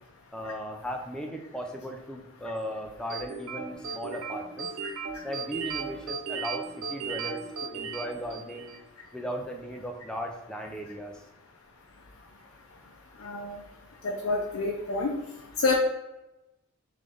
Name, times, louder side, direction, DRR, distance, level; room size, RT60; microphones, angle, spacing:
voice 1, 0.3-4.7 5.2-8.7 9.1-11.2, equal, 5° left, 2 dB, 0.4 m, -37 dB
sound 1, 3.1-8.8, right 5 dB, 80° right, 0.5 m, -36 dB
voice 2, 13.2-13.6 14.0-15.1 15.6-15.7, left 3 dB, 65° left, -1 dB, 0.5 m, -28 dB
3.8 x 3.2 x 3.4 m, 0.96 s
head